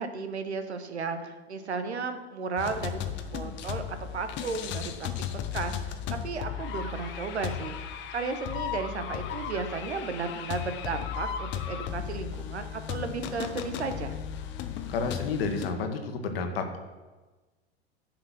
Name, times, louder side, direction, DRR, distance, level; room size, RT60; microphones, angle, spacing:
voice 1, 0.0-3.0 3.3-5.1 5.5-5.7 6.1-7.8 8.1-14.1, right 4 dB, 80° right, 9 dB, 1.1 m, -34 dB
sound 1, 2.6-15.7, left 8 dB, 35° left, 0.9 m, -35 dB
voice 2, 14.9-16.8, left 4 dB, 60° left, 6 dB, 1.5 m, -30 dB
10.5 x 5.1 x 6.3 m, 1.2 s
figure-of-eight pair, 90°, 33 cm